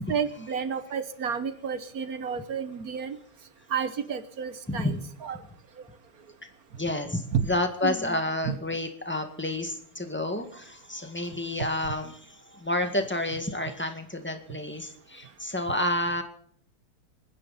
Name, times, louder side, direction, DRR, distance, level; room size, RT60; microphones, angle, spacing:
voice 1, 0.0-3.2 3.7-5.4 7.3-7.4 7.8-8.2 8.4-8.6, right 7 dB, 50° right, 11 dB, 1.3 m, -31 dB
voice 2, 4.7-5.0 6.7-16.2, left 1 dB, 5° left, 6 dB, 1.6 m, -30 dB
27.5 x 10.0 x 4.2 m, 0.62 s
omnidirectional pair, 2.2 m